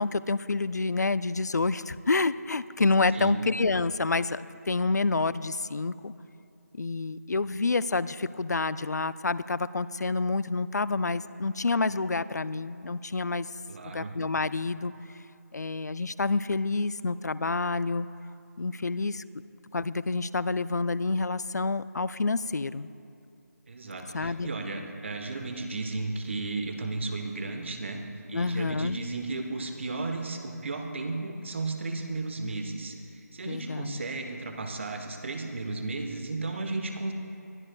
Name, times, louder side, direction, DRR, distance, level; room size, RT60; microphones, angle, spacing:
voice 1, 0.0-6.1 6.7-13.5 13.8-14.9 15.5-18.1 18.6-19.2 19.7-22.9 24.1-24.5 28.3-29.0 33.4-34.0, left 3 dB, 75° left, 17 dB, 0.4 m, -28 dB
voice 2, 3.1-3.5 13.7-14.1 23.7-28.0 28.3-33.0 33.3-37.1, right 3 dB, 45° right, 5 dB, 1.0 m, -34 dB
20.5 x 12.5 x 2.2 m, 2.5 s
figure-of-eight pair, 160°, 9 cm